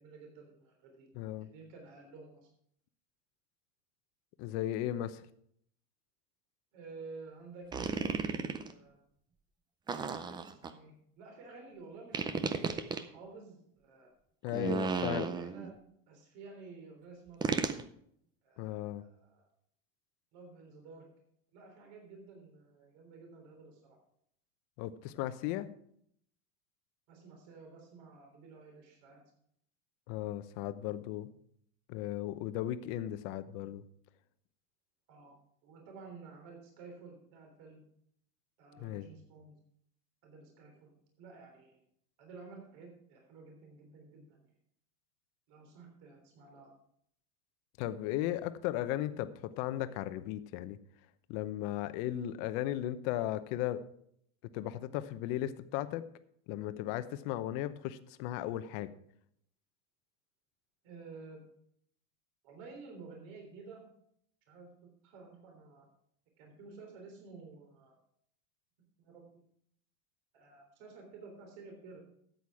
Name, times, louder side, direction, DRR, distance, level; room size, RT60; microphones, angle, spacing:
voice 1, 0.0-1.1 1.4-2.5 6.7-7.7 8.0-9.0 10.2-14.1 14.6-15.7 16.1-17.8 18.4-19.5 20.3-21.1 21.5-24.0 27.1-29.2 35.1-35.3 35.6-37.8 38.6-39.5 40.2-41.8 42.2-44.3 45.5-46.7 60.8-61.4 62.4-63.8 64.5-65.9 66.4-68.0 69.0-69.4 70.3-72.0, right 4 dB, 60° right, 2 dB, 3.6 m, -52 dB
voice 2, 1.1-1.5 4.4-5.2 14.4-15.3 18.6-19.0 24.8-25.7 30.1-31.3 31.9-33.8 38.8-39.1 47.8-50.8 51.3-53.8 54.5-56.1 56.5-58.9, left 13 dB, 55° left, 12 dB, 0.9 m, -36 dB
sound 1, 7.7-8.7 9.9-10.7 12.1-13.0 14.5-15.7 17.4-17.8, right 5 dB, 10° right, 0.4 m, -34 dB
13.0 x 8.2 x 4.8 m, 0.69 s
supercardioid pair, 145°, 40 cm